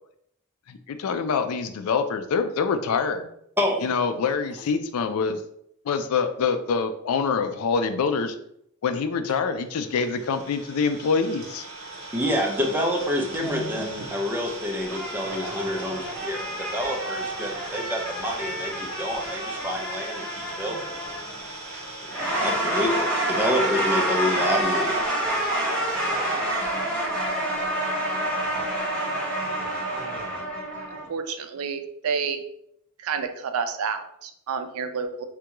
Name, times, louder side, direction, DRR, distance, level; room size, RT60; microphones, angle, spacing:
voice 1, 0.7-3.3 3.8-5.4 5.8-8.3 8.8-11.6, left 5 dB, 85° left, 8 dB, 0.4 m, -25 dB
voice 2, 3.6-3.9 12.1-20.9 22.3-25.0, left 1 dB, 10° right, 0 dB, 0.5 m, -28 dB
Idling, 9.7-27.4, right 2 dB, 55° right, 1.0 m, -40 dB
sound 1, 13.4-14.2 14.9-21.5 22.0-31.1, right 1 dB, 5° left, 1.2 m, -28 dB
voice 3, 31.1-32.4 33.0-35.2, right 6 dB, 75° right, 8 dB, 0.4 m, -29 dB
3.5 x 2.2 x 2.9 m, 0.73 s
head